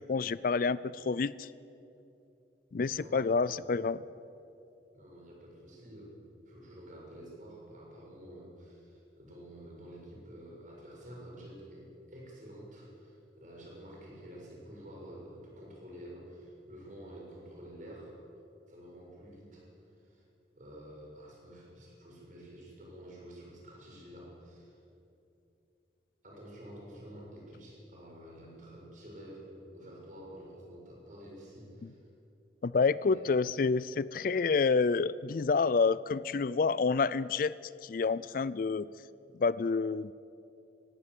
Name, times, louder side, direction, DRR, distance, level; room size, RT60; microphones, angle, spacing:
voice 1, 0.0-1.5 2.7-4.0 31.8-31.9 32.6-37.5 37.8-38.9 39.3-40.1, left 4 dB, 50° left, 19 dB, 0.4 m, -28 dB
voice 2, 2.9-3.3 4.9-6.1 6.5-18.2 18.7-19.7 20.0-20.2 20.6-24.8 26.2-29.5 29.7-32.0 33.1-33.2, equal, 45° right, -3 dB, 7.0 m, -49 dB
20.0 x 16.0 x 8.4 m, 2.7 s
head